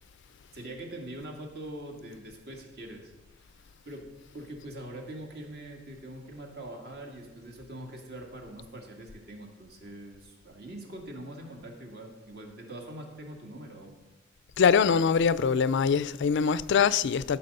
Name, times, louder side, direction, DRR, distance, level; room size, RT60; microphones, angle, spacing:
voice 1, 0.5-3.1 3.9-4.0 4.3-14.0, right 1 dB, 55° right, 2.2 m, -43 dB
voice 2, 14.6-17.4, left 6 dB, 60° left, 0.4 m, -23 dB
14.5 x 6.1 x 5.5 m
head